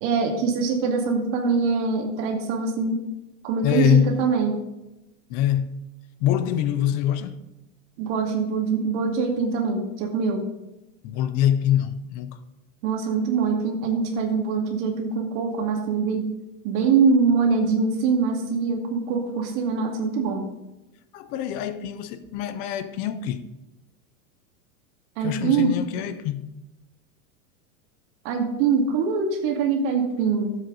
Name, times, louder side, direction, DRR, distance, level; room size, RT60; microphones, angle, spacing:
voice 1, 0.0-3.0 3.4-4.5 8.0-10.4 12.8-16.3 16.6-20.4 25.2-25.7 28.2-30.6, right 5 dB, 50° right, 2.4 m, -23 dB
voice 2, 3.6-4.2 5.3-5.8 6.2-7.4 11.0-12.4 21.1-23.5 25.2-26.5, left 10 dB, 25° left, 0.3 m, -24 dB
13.0 x 7.8 x 3.9 m
supercardioid pair, 150°, 43 cm